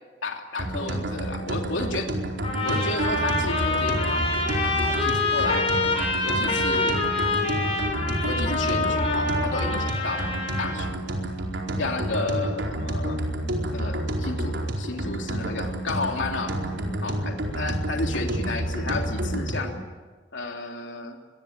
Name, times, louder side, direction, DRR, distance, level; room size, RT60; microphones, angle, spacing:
voice 1, 0.2-2.1 2.6-4.2 4.8-5.7 6.2-7.0 8.2-10.3 10.6-10.9 11.8-13.3 13.7-16.5 17.0-19.7 20.3-21.2, left 2 dB, 70° left, 2 dB, 3.0 m, -32 dB
sound 1, 0.6-19.8, right 1 dB, 70° right, 4.5 m, -29 dB
sound 2, 2.4-10.8, left 2 dB, 30° left, 6.7 m, -26 dB
27.0 x 22.0 x 8.8 m, 1.4 s
head